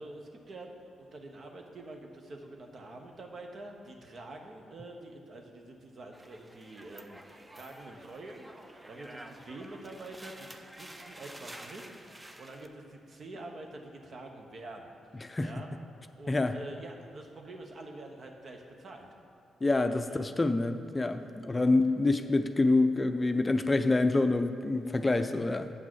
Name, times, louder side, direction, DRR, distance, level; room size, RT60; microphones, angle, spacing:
voice 1, 0.0-14.9 15.4-15.7 16.2-19.1 20.0-20.2 21.5-21.7, right 2 dB, 55° right, 3 dB, 1.2 m, -46 dB
sound 1, 6.1-12.7, right 1 dB, 15° right, 0.7 m, -50 dB
voice 2, 19.6-25.7, left 2 dB, 25° left, 9 dB, 0.5 m, -27 dB
7.9 x 6.0 x 6.3 m, 2.5 s
hypercardioid pair, 45°, 0 cm